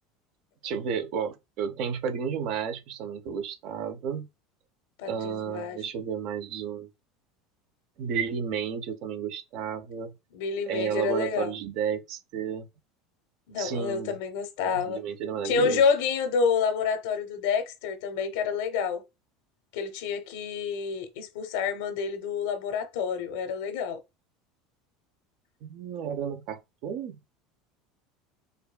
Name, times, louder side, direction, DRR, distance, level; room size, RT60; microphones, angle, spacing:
voice 1, 0.6-4.3 5.0-6.9 8.0-10.2 10.7-12.7 13.6-14.2 14.6-15.8 25.6-27.3, right 7 dB, 60° right, 0.5 m, -32 dB
voice 2, 5.0-5.8 10.3-11.5 13.5-15.0 15.4-19.0 19.7-24.0, left 6 dB, 80° left, 0.8 m, -28 dB
5.0 x 2.3 x 2.2 m
supercardioid pair, 120°, 0 cm